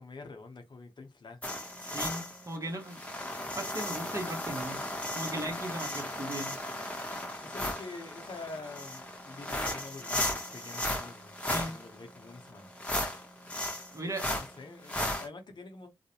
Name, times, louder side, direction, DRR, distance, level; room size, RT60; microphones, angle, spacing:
voice 1, 0.0-1.4 7.4-11.3 11.7-12.7 14.4-15.9, left 3 dB, 50° left, 0.7 m, -46 dB
sound 1, 1.4-15.3, left 1 dB, 15° left, 0.8 m, -36 dB
voice 2, 1.8-3.0 3.5-4.8 5.1-6.5 11.4-11.7 13.9-14.3, right 1 dB, 35° right, 0.9 m, -37 dB
2.3 x 2.1 x 2.8 m
supercardioid pair, 40°, 10 cm